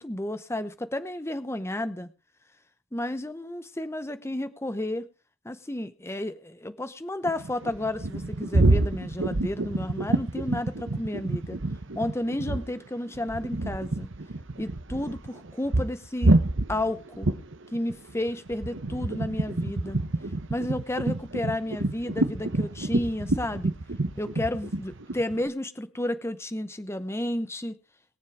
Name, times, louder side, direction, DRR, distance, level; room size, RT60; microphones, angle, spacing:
voice 1, 0.0-2.1 2.9-5.1 5.4-11.6 11.9-14.1 14.6-16.4 16.7-17.3 17.7-20.0 20.5-23.7 24.2-27.8, left 1 dB, 10° left, 12 dB, 0.8 m, -32 dB
sound 1, 7.2-12.8 13.1-25.5, right 2 dB, 60° right, 1.1 m, -27 dB
22.0 x 7.4 x 4.7 m, 0.32 s
head